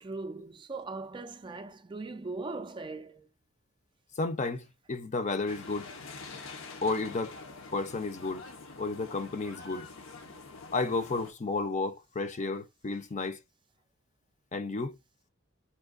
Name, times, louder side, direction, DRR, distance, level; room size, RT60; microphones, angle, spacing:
voice 1, 0.0-3.3, right 3 dB, 25° right, 0.3 m, -39 dB
voice 2, 4.2-5.9 6.8-7.3 7.7-8.4 8.8-9.9 10.7-13.4 14.5-15.0, left 3 dB, 35° left, 0.5 m, -32 dB
sound 1, 5.5-11.3, left 3 dB, 70° left, 0.7 m, -46 dB
4.6 x 2.7 x 2.4 m
head